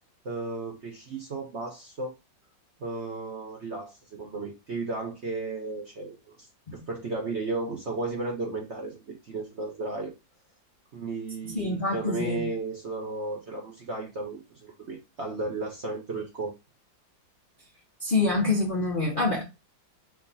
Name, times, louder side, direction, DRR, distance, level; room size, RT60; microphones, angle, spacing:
voice 1, 0.2-2.1 2.8-6.5 6.7-10.1 10.9-16.5, right 3 dB, 50° right, 0.8 m, -34 dB
voice 2, 11.4-12.5 18.0-19.4, left 3 dB, 45° left, 0.7 m, -26 dB
4.7 x 2.7 x 3.9 m
omnidirectional pair, 2.0 m